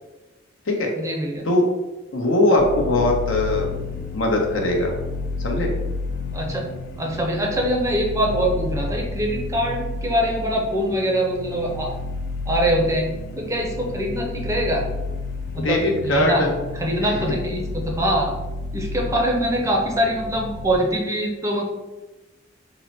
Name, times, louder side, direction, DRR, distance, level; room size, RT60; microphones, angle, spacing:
voice 1, 1.0-1.5 6.3-6.7 7.0-12.0 12.5-13.1 13.4-14.8 15.5-16.4 16.7-18.3 18.7-21.7, equal, 15° right, 0 dB, 0.5 m, -23 dB
voice 2, 2.1-4.9 5.4-5.7 15.6-16.5 17.0-17.1, left 1 dB, 80° left, 1 dB, 0.8 m, -21 dB
sound 1, 2.6-20.8, left 3 dB, 55° left, 0.3 m, -31 dB
3.8 x 2.1 x 4.3 m, 1.1 s
head